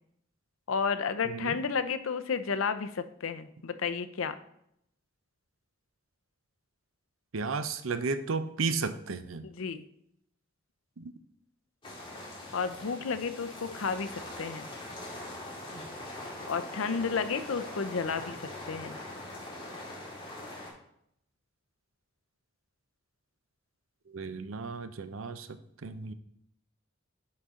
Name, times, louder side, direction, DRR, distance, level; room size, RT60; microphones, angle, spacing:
voice 1, 0.7-4.4 9.4-9.8 12.5-14.7 16.5-19.0, left 5 dB, 80° left, 11 dB, 0.6 m, -32 dB
voice 2, 1.2-1.6 7.3-9.4 11.0-11.1 24.1-26.1, right 4 dB, 80° right, 11 dB, 0.6 m, -34 dB
sound 1, 11.8-20.7, left 1 dB, 25° left, 1.8 m, -42 dB
9.8 x 4.1 x 3.7 m, 0.72 s
head